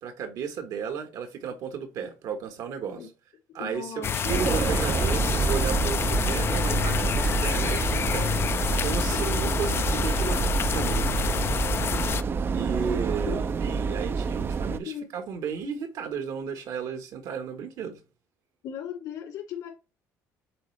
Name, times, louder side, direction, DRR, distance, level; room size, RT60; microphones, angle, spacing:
voice 1, 0.0-3.1 3.5-11.1 12.5-18.0, right 7 dB, 70° right, 1.3 m, -34 dB
voice 2, 3.6-4.6 13.3-13.4 14.9-15.1 18.6-19.7, left 9 dB, 80° left, 3.2 m, -37 dB
sound 1, 4.0-12.2, left 8 dB, 40° left, 0.4 m, -28 dB
sound 2, 4.3-14.8, right 5 dB, 35° right, 0.4 m, -27 dB
7.6 x 3.8 x 3.2 m
cardioid pair, 100°, 6 cm